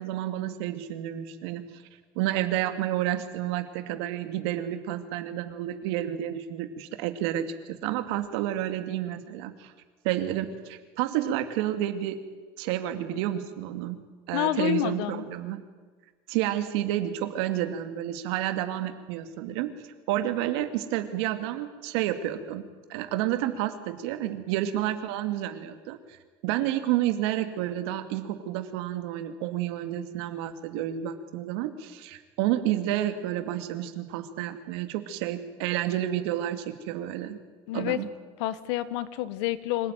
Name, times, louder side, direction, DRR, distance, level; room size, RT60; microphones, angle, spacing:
voice 1, 0.0-1.6 2.2-9.7 10.0-12.2 12.6-14.0 14.3-15.6 16.3-19.7 20.1-26.0 26.4-37.4 37.7-38.1, right 12 dB, 75° right, 8 dB, 2.5 m, -30 dB
voice 2, 14.3-15.2 37.7-38.0 38.4-39.9, left 14 dB, 80° left, 15 dB, 1.5 m, -28 dB
26.0 x 18.0 x 9.4 m, 1.4 s
cardioid pair, 170°, 14 cm